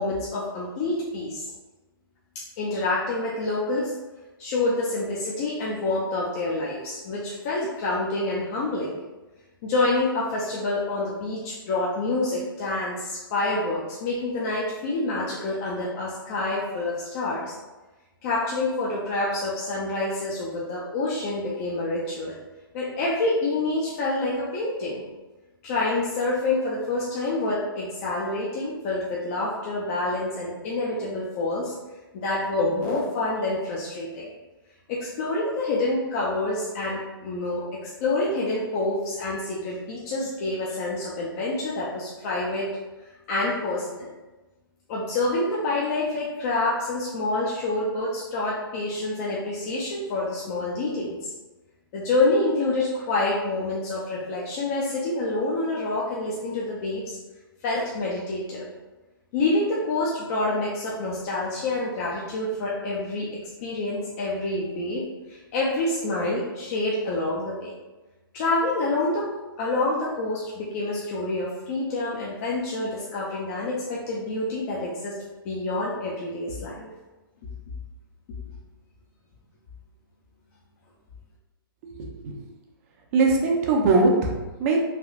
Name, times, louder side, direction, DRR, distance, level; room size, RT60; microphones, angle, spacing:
voice 1, 0.0-1.4 2.6-3.9 4.4-9.0 9.6-17.5 18.2-22.4 22.7-25.0 25.6-31.7 32.1-34.3 34.9-42.7 43.3-44.1 44.9-51.3 51.9-57.2 57.6-58.7 59.3-63.3 63.6-65.0 65.3-67.7 68.3-69.3 69.6-75.1 75.4-76.9, left 2 dB, 35° left, -5 dB, 0.5 m, -27 dB
voice 2, 82.0-82.4 83.1-84.8, right 3 dB, 35° right, 1 dB, 0.6 m, -21 dB
3.3 x 2.5 x 2.4 m, 1.1 s
hypercardioid pair, 135°, 13 cm